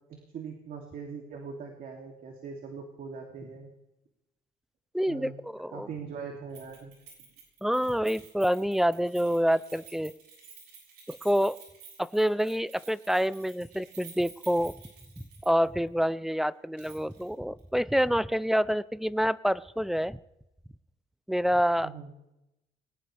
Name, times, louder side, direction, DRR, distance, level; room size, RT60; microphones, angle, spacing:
voice 1, 0.1-3.7 5.1-5.4 5.7-6.9 21.8-22.1, right 5 dB, 55° right, 1 dB, 2.9 m, -41 dB
voice 2, 4.9-5.9 7.6-10.1 11.1-11.6 12.0-14.7 15.4-20.2 21.3-21.9, equal, ahead, 18 dB, 0.5 m, -27 dB
Keys jangling, 6.5-15.7 16.0-16.1 16.8-17.3 17.6-17.7, right 6 dB, 75° right, 7.5 m, -52 dB
21.5 x 19.0 x 3.4 m, 0.91 s
cardioid pair, 110°, 17 cm